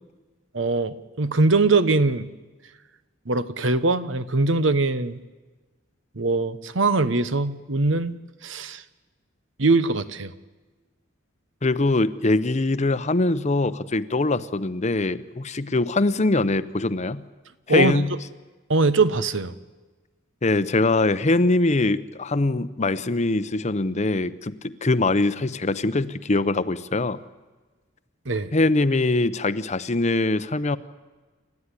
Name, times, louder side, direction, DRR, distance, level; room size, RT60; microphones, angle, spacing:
voice 1, 0.5-2.3 3.3-5.2 6.2-8.2 8.4-8.8 9.6-10.3 17.7-17.9 18.7-19.5 28.2-28.5, right 3 dB, 70° right, 13 dB, 1.0 m, -22 dB
voice 2, 11.6-17.2 17.7-18.1 20.4-27.2 28.5-30.8, left 2 dB, 35° left, 14 dB, 0.8 m, -22 dB
29.5 x 13.5 x 9.9 m, 1.3 s
head